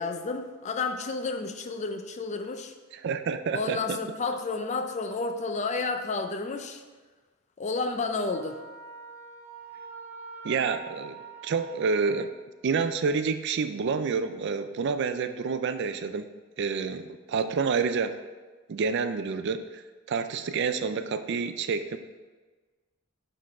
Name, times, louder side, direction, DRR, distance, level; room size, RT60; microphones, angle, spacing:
voice 1, 0.0-2.7 3.5-6.8 7.6-8.6, left 3 dB, 35° left, 7 dB, 0.5 m, -31 dB
voice 2, 2.9-4.0 10.4-11.1 11.4-12.3 12.6-16.3 16.6-18.2 18.7-19.8 20.1-22.0, right 5 dB, 60° right, 9 dB, 0.4 m, -28 dB
Wind instrument woodwind instrument, 8.3-12.4, right 4 dB, 15° right, 1.4 m, -45 dB
6.5 x 3.9 x 4.7 m, 1.3 s
head